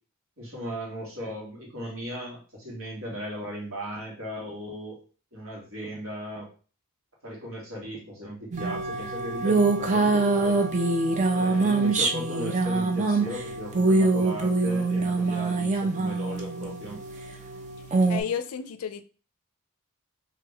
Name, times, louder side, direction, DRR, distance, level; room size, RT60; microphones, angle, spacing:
voice 1, 0.4-5.0 5.3-6.5 7.2-10.6 11.3-17.0, equal, 65° right, -3 dB, 1.8 m, -37 dB
sound 1, 8.5-18.2, right 3 dB, 35° right, 0.5 m, -24 dB
voice 2, 18.1-19.0, left 7 dB, 80° left, 11 dB, 0.4 m, -31 dB
3.4 x 2.9 x 3.4 m, 0.38 s
head